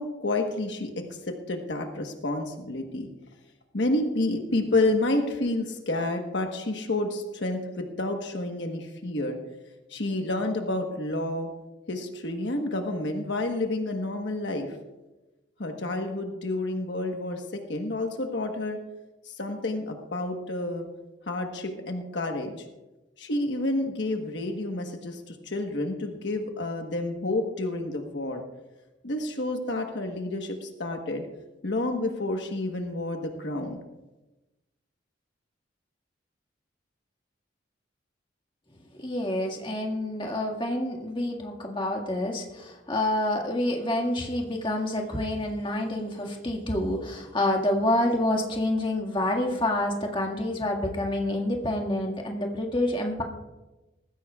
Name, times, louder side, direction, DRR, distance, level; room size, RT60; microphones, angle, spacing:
voice 1, 0.0-3.1 3.7-9.4 9.9-11.5 11.9-14.7 15.6-18.8 19.2-20.9 21.3-22.6 23.2-28.4 29.0-31.3 31.6-33.8, left 2 dB, 65° left, 3 dB, 1.3 m, -29 dB
voice 2, 38.9-53.2, left 1 dB, 25° left, 1 dB, 1.8 m, -28 dB
20.0 x 15.0 x 2.4 m, 1.1 s
head